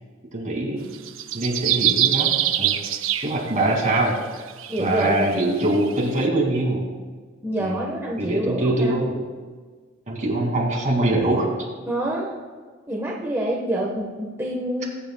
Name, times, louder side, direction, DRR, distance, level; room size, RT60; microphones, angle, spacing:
voice 1, 0.3-0.9 1.3-2.3 2.6-2.8 3.2-4.4 4.8-6.9 7.6-7.9 8.2-9.1 10.1-11.5, right 1 dB, 40° right, -1 dB, 2.5 m, -23 dB
sound 1, 0.9-3.9 4.5-6.0, right 12 dB, 75° right, 0.6 m, -24 dB
voice 2, 4.7-5.3 7.4-9.0 11.9-12.3 12.9-14.8, right 1 dB, 10° right, -4 dB, 1.3 m, -26 dB
21.5 x 10.0 x 2.3 m, 1.5 s
head